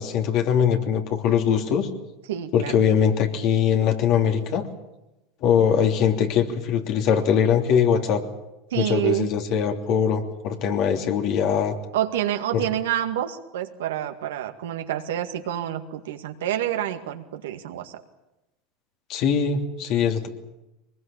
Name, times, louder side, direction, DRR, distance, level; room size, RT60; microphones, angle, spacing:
voice 1, 0.0-1.9 2.5-4.7 5.4-8.2 8.7-11.7 19.1-20.3, left 7 dB, 55° left, 4 dB, 3.1 m, -22 dB
voice 2, 2.3-2.7 8.7-9.3 11.9-18.0, right 12 dB, 80° right, 7 dB, 2.0 m, -28 dB
23.0 x 20.5 x 8.8 m, 0.96 s
hypercardioid pair, 95°, 0 cm